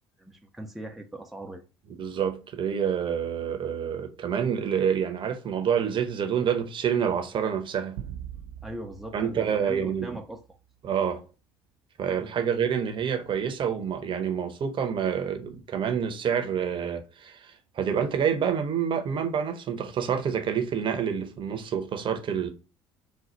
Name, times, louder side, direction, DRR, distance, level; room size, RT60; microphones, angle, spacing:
voice 1, 0.2-1.6 8.6-10.4 12.2-12.4, right 1 dB, ahead, 0.6 m, -40 dB
voice 2, 1.9-8.0 9.1-10.2 10.8-11.2 12.0-22.5, right 7 dB, 40° right, 0.9 m, -28 dB
sound 1, 8.0-10.6, right 10 dB, 70° right, 0.4 m, -43 dB
3.9 x 2.4 x 4.4 m
hypercardioid pair, 65°, 13 cm